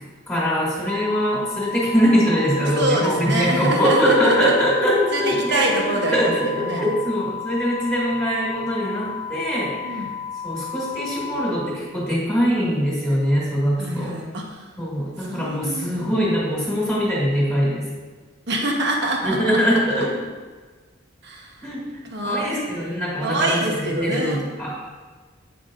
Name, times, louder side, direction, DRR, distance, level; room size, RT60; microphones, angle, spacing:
voice 1, 0.3-5.7 6.1-10.0 10.4-14.2 14.8-17.9 19.2-20.1 21.6-24.8, equal, 10° left, -6 dB, 1.9 m, -22 dB
sound 1, 0.9-11.5, left 7 dB, 30° left, 0.4 m, -33 dB
voice 2, 2.6-4.5 5.1-6.9 9.8-10.1 13.8-14.7 15.2-16.1 18.5-20.0 21.2-21.7 22.1-22.5 23.2-24.4, right 1 dB, 60° right, 0 dB, 1.3 m, -25 dB
9.0 x 6.0 x 3.8 m, 1.4 s
head